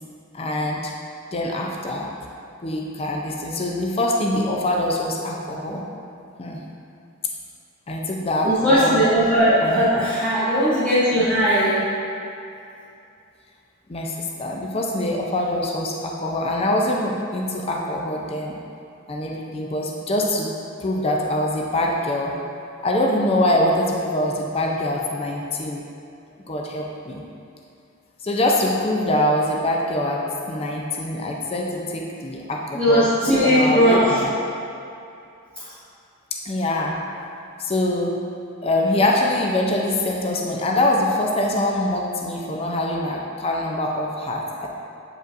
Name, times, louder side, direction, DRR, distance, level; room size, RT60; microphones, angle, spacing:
voice 1, 0.3-0.9 1.3-2.1 2.6-5.8 6.4-6.6 7.9-9.0 9.6-10.0 13.9-18.6 19.1-20.5 20.8-22.3 22.8-25.8 26.5-27.2 28.2-34.3 36.3-37.0 37.6-38.2 38.6-44.7, left 1 dB, 30° left, -1 dB, 0.5 m, -24 dB
voice 2, 8.4-11.9 32.7-34.2, equal, 5° left, -15 dB, 1.4 m, -18 dB
7.9 x 5.0 x 2.6 m, 2.6 s
head